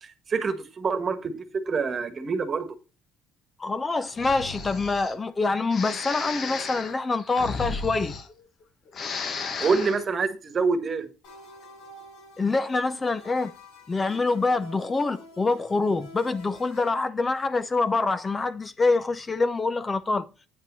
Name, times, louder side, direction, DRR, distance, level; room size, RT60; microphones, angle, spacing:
voice 1, 0.0-2.7 9.6-11.1, right 4 dB, 35° right, 1.6 m, -26 dB
voice 2, 3.6-8.1 12.4-13.5 13.9-20.3, left 3 dB, 20° left, 0.5 m, -25 dB
Breathing, 4.1-5.1 5.7-8.6 8.9-10.0, left 4 dB, 45° left, 1.4 m, -34 dB
sound 1, 11.2-16.9, equal, 80° left, 6.1 m, -48 dB
9.2 x 5.6 x 5.5 m
cardioid pair, 115°, 0 cm